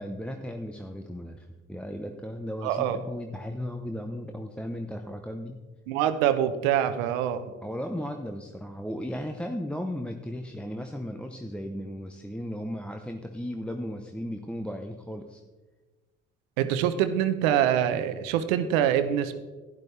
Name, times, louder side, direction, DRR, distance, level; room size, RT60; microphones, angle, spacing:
voice 1, 0.0-5.6 7.6-15.4, equal, 5° left, 4 dB, 0.8 m, -36 dB
voice 2, 2.6-3.0 5.9-7.5 16.6-19.3, right 10 dB, 80° right, 10 dB, 0.9 m, -25 dB
12.0 x 11.0 x 3.3 m, 1.3 s
hypercardioid pair, 60°, 40 cm